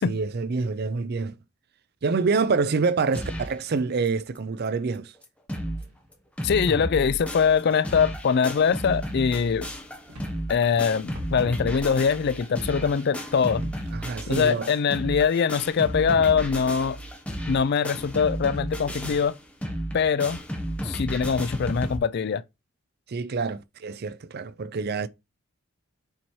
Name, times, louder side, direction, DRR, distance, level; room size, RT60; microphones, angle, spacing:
voice 1, 0.0-1.4 2.0-5.1 13.9-14.7 23.1-25.1, right 4 dB, 45° right, 0.4 m, -26 dB
sound 1, 3.1-3.6 4.1-4.2 4.4-4.5 4.9-5.0 5.2-5.8 6.1-22.0, equal, 5° left, 1.0 m, -33 dB
sound 2, 5.8-19.3, equal, 90° right, 1.9 m, -50 dB
voice 2, 6.4-9.7 10.5-13.6 14.3-17.0 17.5-19.3 19.9-20.4 20.8-22.4, left 6 dB, 50° left, 0.3 m, -23 dB
7.4 x 4.2 x 3.1 m
head